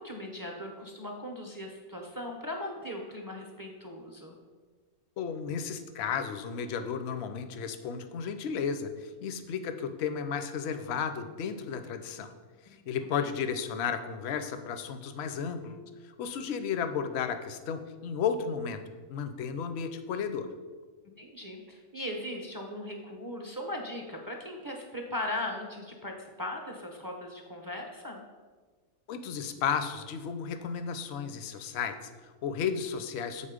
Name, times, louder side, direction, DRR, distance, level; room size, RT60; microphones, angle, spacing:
voice 1, 0.0-4.4 13.2-13.3 21.2-28.2, left 1 dB, 25° right, 1 dB, 0.5 m, -38 dB
voice 2, 5.2-12.3 12.7-18.8 19.1-20.5 29.1-33.5, left 7 dB, 60° left, 9 dB, 0.7 m, -33 dB
7.4 x 4.2 x 5.0 m, 1.4 s
omnidirectional pair, 1.5 m